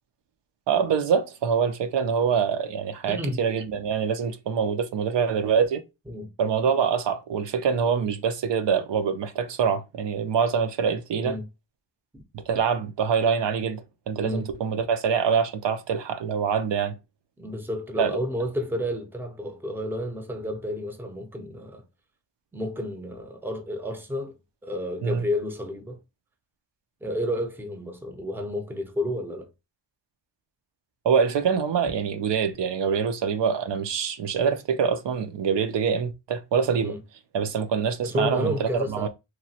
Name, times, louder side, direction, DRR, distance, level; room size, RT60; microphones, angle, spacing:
voice 1, 0.7-5.8 6.4-11.4 12.5-13.8 14.1-16.9 18.0-18.1 25.0-25.2 31.0-36.9 37.3-39.1, right 6 dB, 70° right, 0.5 m, -25 dB
voice 2, 3.1-3.4 6.1-6.3 11.2-11.4 12.1-12.2 14.2-14.5 17.4-21.8 22.5-26.0 27.0-29.5 36.8-37.0 38.0-39.1, equal, 5° right, 0.6 m, -31 dB
3.0 x 2.2 x 2.7 m
cardioid pair, 55°, 44 cm